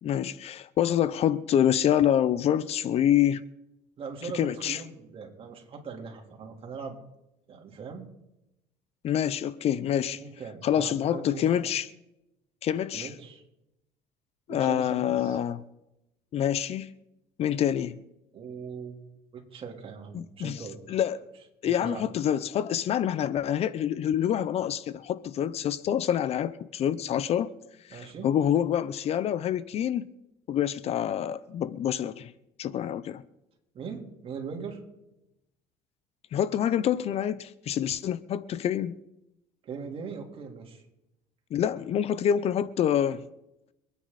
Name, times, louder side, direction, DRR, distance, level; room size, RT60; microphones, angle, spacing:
voice 1, 0.0-3.4 4.3-4.8 9.0-10.2 10.6-11.9 12.6-13.1 14.5-15.6 16.3-16.9 17.4-18.0 20.1-20.6 20.9-21.2 21.6-27.5 27.9-30.1 30.5-32.3 32.6-33.2 36.3-39.0 41.5-43.2, left 10 dB, 50° left, 0.7 m, -26 dB
voice 2, 4.0-7.0 7.5-8.1 10.1-11.7 12.9-13.4 14.5-15.4 18.3-19.0 19.3-21.0 21.6-22.1 27.9-28.3 33.7-34.8 39.6-40.8, right 5 dB, 45° right, 3.7 m, -40 dB
26.5 x 9.8 x 4.2 m
supercardioid pair, 100°, 14 cm